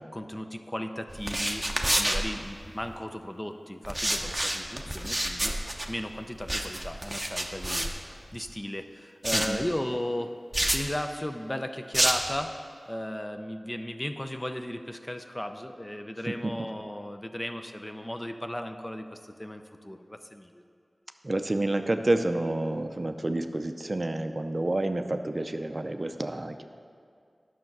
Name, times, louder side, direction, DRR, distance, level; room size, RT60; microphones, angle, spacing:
voice 1, 0.1-1.6 2.0-5.5 5.9-10.4 10.7-12.6 12.9-20.6, left 1 dB, 20° left, 7 dB, 0.5 m, -36 dB
sound 1, 1.1-3.0 3.8-8.5 9.2-9.6 10.5-10.9 11.9-12.4, right 1 dB, 15° right, 0.8 m, -29 dB
voice 2, 9.3-9.6 21.2-26.6, right 2 dB, 40° right, 7 dB, 0.5 m, -29 dB
9.5 x 6.4 x 6.0 m, 2.3 s
wide cardioid pair, 65°, 0 cm